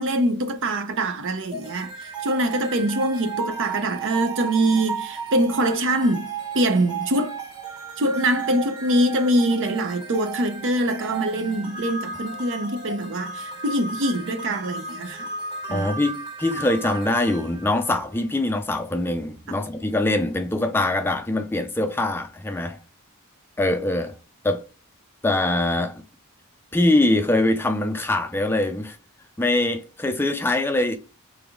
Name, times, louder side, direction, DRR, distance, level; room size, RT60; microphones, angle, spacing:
voice 1, 0.0-6.3 6.5-7.4 8.0-15.3 15.7-15.9 19.5-19.6, right 1 dB, 60° right, 0.6 m, -24 dB
sound 1, 1.5-18.7, right 4 dB, 20° right, 1.2 m, -35 dB
voice 2, 15.7-22.8 23.6-24.1 24.4-24.6 25.2-26.0 26.7-29.0 29.4-31.0, left 2 dB, 10° left, 0.4 m, -23 dB
3.4 x 3.4 x 3.5 m
head